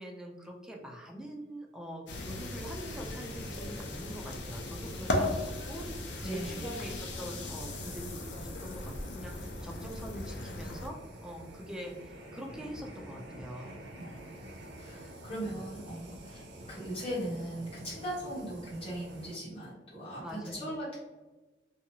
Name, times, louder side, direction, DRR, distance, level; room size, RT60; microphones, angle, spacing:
voice 1, 0.0-13.8 14.0-14.2 20.2-20.7, equal, 5° right, 1 dB, 0.3 m, -44 dB
sound 1, 2.1-10.9, left 1 dB, 75° left, 0.5 m, -37 dB
sound 2, 6.1-19.4, right 1 dB, 80° right, 0.5 m, -49 dB
voice 2, 6.2-6.7 14.0-14.4 14.8-21.0, right 1 dB, 30° left, -9 dB, 1.2 m, -39 dB
2.6 x 2.3 x 2.7 m, 1.2 s
head